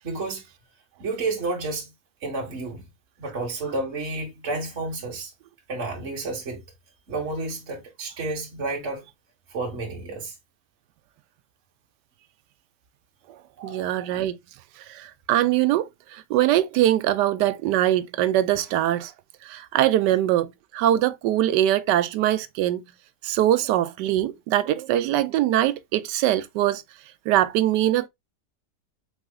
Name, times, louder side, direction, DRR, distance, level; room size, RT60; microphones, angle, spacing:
voice 1, 0.0-0.5 1.0-1.9 2.2-2.9 3.2-5.3 5.7-6.6 7.1-9.0 9.5-10.3 13.6-14.1 20.0-20.1, right 3 dB, 45° right, 1.6 m, -31 dB
voice 2, 13.6-14.4 14.9-19.1 19.4-22.8 23.2-26.8 27.3-28.1, right 13 dB, 80° right, 1.2 m, -22 dB
4.9 x 4.0 x 2.3 m
omnidirectional pair, 1.8 m